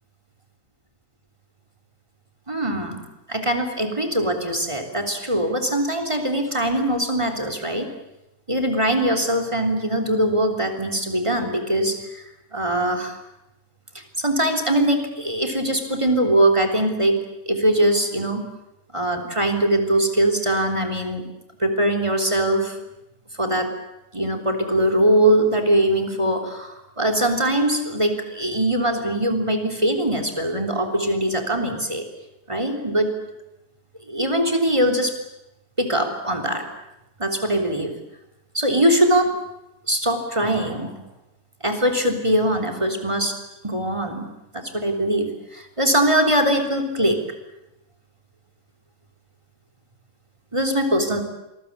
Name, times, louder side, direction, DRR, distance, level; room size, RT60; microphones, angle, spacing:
voice 1, 2.5-3.0 3.3-7.9 8.5-12.2 12.5-13.2 13.9-18.4 18.9-21.3 21.6-22.8 23.3-23.7 24.1-32.0 32.5-33.1 34.1-35.1 35.8-36.6 37.2-37.9 38.5-39.4 39.9-41.0 41.6-43.4 43.6-44.3 44.5-47.2 50.5-51.2, right 1 dB, 15° right, 6 dB, 3.6 m, -22 dB
27.0 x 21.0 x 8.6 m, 0.90 s
omnidirectional pair, 1.8 m